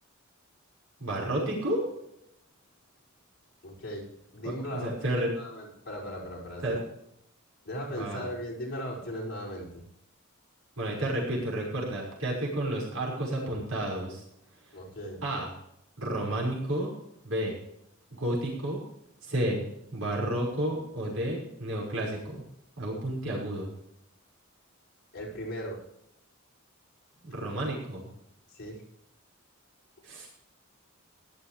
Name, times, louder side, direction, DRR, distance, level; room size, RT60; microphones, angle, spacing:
voice 1, 1.0-1.8 4.4-4.5 4.8-5.3 6.6-6.8 7.9-8.3 10.8-14.2 15.2-15.5 16.0-16.9 17.2-17.6 18.1-18.8 19.2-19.7 19.9-22.4 22.8-23.7 27.2-28.1 30.0-30.3, right 1 dB, 75° right, -4 dB, 5.6 m, -31 dB
voice 2, 3.6-6.8 7.6-9.8 14.7-15.2 25.1-25.9 28.5-28.8, equal, 50° left, -5 dB, 6.1 m, -38 dB
17.5 x 13.0 x 3.4 m, 0.79 s
head